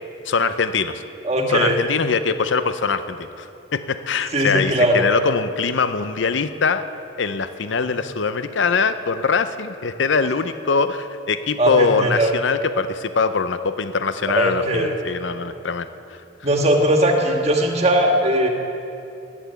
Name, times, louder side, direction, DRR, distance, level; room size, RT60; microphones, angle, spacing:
voice 1, 0.3-1.0 1.5-3.5 3.7-6.8 7.2-16.2, left 5 dB, 75° left, 11 dB, 0.6 m, -22 dB
voice 2, 1.2-1.8 4.3-5.1 11.6-12.3 14.4-14.9 16.4-18.5, right 1 dB, 35° right, 2 dB, 1.7 m, -19 dB
16.0 x 11.0 x 6.9 m, 2.7 s
head